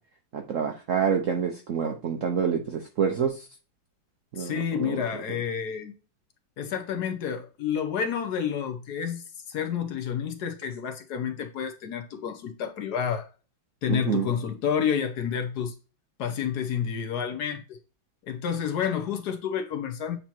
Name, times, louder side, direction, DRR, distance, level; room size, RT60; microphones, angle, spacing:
voice 1, 0.3-3.5 4.3-5.0 13.9-14.3, right 7 dB, 65° right, 0.7 m, -27 dB
voice 2, 4.4-5.9 6.6-13.3 13.8-15.7 16.2-17.8 18.3-20.2, left 8 dB, 65° left, 1.2 m, -29 dB
8.2 x 2.9 x 4.4 m
omnidirectional pair, 2.1 m